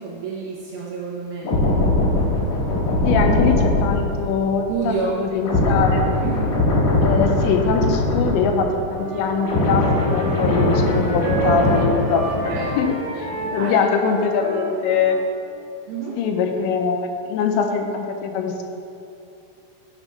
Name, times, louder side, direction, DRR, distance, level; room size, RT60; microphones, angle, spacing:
voice 1, 0.0-1.5 4.7-5.2 6.2-6.5 12.5-12.8 13.4-13.8 14.3-14.4 15.9-16.2, right 5 dB, 80° right, -5 dB, 2.2 m, -29 dB
sound 1, 1.4-8.9 9.2-12.9 13.2-13.5, left 2 dB, 60° left, 1.8 m, -21 dB
voice 2, 3.1-6.0 7.0-9.8 10.1-15.2 16.2-18.6, left 5 dB, 85° left, 4 dB, 2.8 m, -22 dB
Wind instrument woodwind instrument, 8.9-15.2, right 2 dB, 55° right, 3.0 m, -30 dB
9.7 x 3.7 x 5.1 m, 2.7 s
omnidirectional pair, 5.2 m